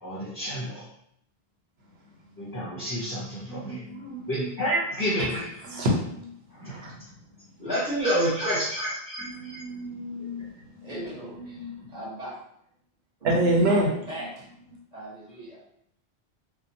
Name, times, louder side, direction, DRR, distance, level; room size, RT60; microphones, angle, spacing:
voice 1, 0.0-0.9 2.4-3.9 4.3-5.5 6.5-6.7 7.6-9.6, equal, 20° left, -9 dB, 0.7 m, -29 dB
voice 2, 3.5-4.5 5.2-6.3 6.7-6.9 9.2-10.9 11.3-11.9 13.2-13.9, right 1 dB, 90° right, -2 dB, 1.0 m, -28 dB
voice 3, 10.8-12.4 13.7-14.4 14.9-15.6, right 1 dB, 45° right, -8 dB, 1.1 m, -39 dB
2.9 x 2.2 x 2.6 m, 0.71 s
omnidirectional pair, 1.0 m